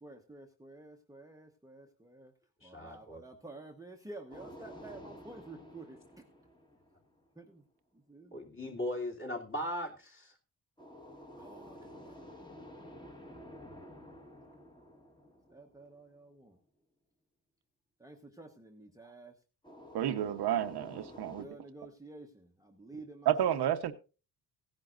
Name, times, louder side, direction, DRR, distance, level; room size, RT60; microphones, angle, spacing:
voice 1, 0.0-2.3 2.6-6.2 7.4-7.6 7.9-8.4 11.4-12.5 12.8-12.9 15.5-16.6 18.0-19.3 21.1-23.7, right 2 dB, 10° right, 2 dB, 1.1 m, -51 dB
voice 2, 2.6-3.2 8.3-10.3, left 1 dB, 30° left, 1 dB, 2.8 m, -38 dB
sound 1, 4.3-7.4 10.8-16.2 19.6-21.5, equal, 10° left, 1.6 m, -51 dB
voice 3, 19.9-21.5 23.2-23.9, right 11 dB, 75° right, 7 dB, 1.1 m, -30 dB
16.5 x 10.5 x 2.5 m, 0.32 s
cardioid pair, 130°, 40 cm